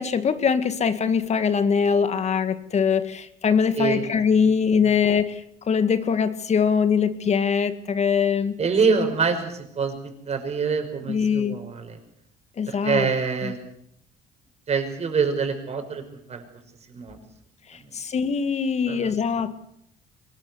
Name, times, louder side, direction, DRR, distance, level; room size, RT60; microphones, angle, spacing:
voice 1, 0.0-5.4 5.7-8.5 11.1-11.6 12.6-13.1 13.4-13.5 17.7-19.6, left 6 dB, 40° left, 1.9 m, -22 dB
voice 2, 3.7-4.1 4.4-4.5 4.8-5.0 8.6-12.0 12.7-13.6 14.7-16.4 16.9-17.2 17.8-17.9 18.9-19.2, right 5 dB, 40° right, 5.7 m, -26 dB
23.5 x 20.0 x 8.1 m
cardioid pair, 110°, 17 cm